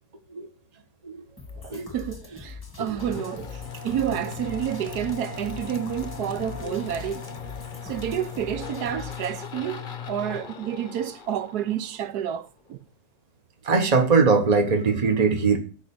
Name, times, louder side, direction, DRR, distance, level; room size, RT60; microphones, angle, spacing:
sound 1, 1.4-9.4, left 4 dB, 15° left, 1.5 m, -43 dB
voice 1, 1.6-7.3 7.8-12.8, right 10 dB, 70° right, 1.2 m, -30 dB
sound 2, 2.9-12.5, left 6 dB, 35° left, 0.9 m, -38 dB
voice 2, 13.6-15.6, right 4 dB, 25° right, 1.4 m, -21 dB
15.5 x 5.1 x 7.1 m
omnidirectional pair, 1.9 m